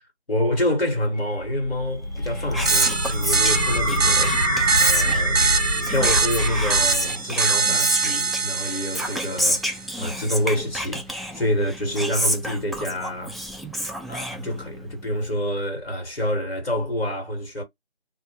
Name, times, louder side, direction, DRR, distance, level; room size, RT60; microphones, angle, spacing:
voice 1, 0.3-13.4 14.1-17.6, left 1 dB, 60° left, 1.4 m, -27 dB
sound 1, 1.2-7.3, right 1 dB, 35° left, 1.0 m, -25 dB
Whispering, 2.1-14.9, equal, ahead, 0.3 m, -30 dB
sound 2, 2.7-9.8, right 5 dB, 70° right, 0.5 m, -24 dB
2.5 x 2.1 x 3.0 m
figure-of-eight pair, 180°, 33 cm